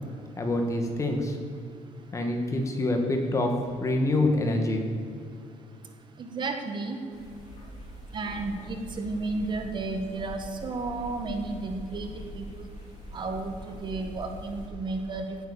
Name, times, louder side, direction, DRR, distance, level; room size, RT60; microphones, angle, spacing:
voice 1, 0.4-1.4 2.1-4.9, left 1 dB, 25° left, 3 dB, 2.1 m, -26 dB
voice 2, 6.2-7.0 8.1-12.7 13.1-15.4, right 3 dB, 40° right, 5 dB, 1.5 m, -33 dB
sound 1, 7.1-14.7, left 1 dB, 65° left, 3.3 m, -43 dB
16.0 x 9.0 x 6.9 m, 2.3 s
cardioid pair, 155°, 13 cm